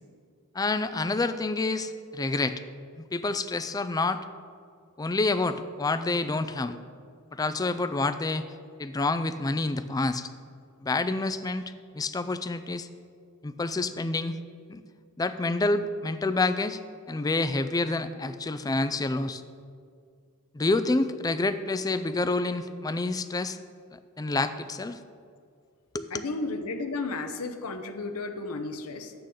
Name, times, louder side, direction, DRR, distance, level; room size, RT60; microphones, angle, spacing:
voice 1, 0.5-2.6 3.0-4.2 5.0-6.8 7.3-8.4 8.8-10.3 10.8-12.9 13.4-14.4 14.7-14.8 15.2-16.8 17.1-19.4 20.5-23.6 24.2-25.0 25.9-26.3, left 3 dB, 15° left, 11 dB, 0.3 m, -28 dB
voice 2, 26.1-29.1, left 3 dB, 85° left, 6 dB, 0.8 m, -33 dB
11.0 x 8.7 x 3.8 m, 2.2 s
head